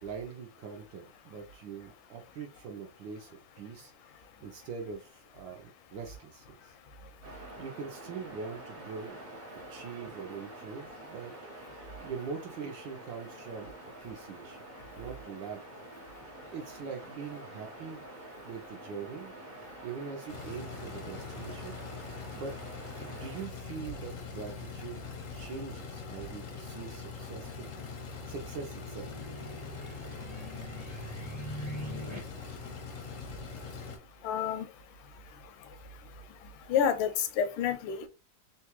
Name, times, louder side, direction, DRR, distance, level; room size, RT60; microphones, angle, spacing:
voice 1, 0.0-6.7 7.3-9.2 9.5-14.7 14.9-15.6 16.5-18.0 18.4-21.7 22.3-22.6 23.0-25.0 25.3-27.7 28.0-29.1 32.4-32.6, right 6 dB, 70° right, 3 dB, 1.1 m, -43 dB
sound 1, 7.2-23.5, right 1 dB, 55° right, 0.6 m, -47 dB
sound 2, 20.3-34.0, left 4 dB, 65° left, 0.8 m, -43 dB
sound 3, 27.3-32.2, equal, 10° right, 0.6 m, -43 dB
voice 2, 34.2-34.7 36.7-38.1, left 8 dB, 85° left, 10 dB, 1.5 m, -28 dB
3.8 x 2.2 x 2.9 m, 0.28 s
omnidirectional pair, 2.4 m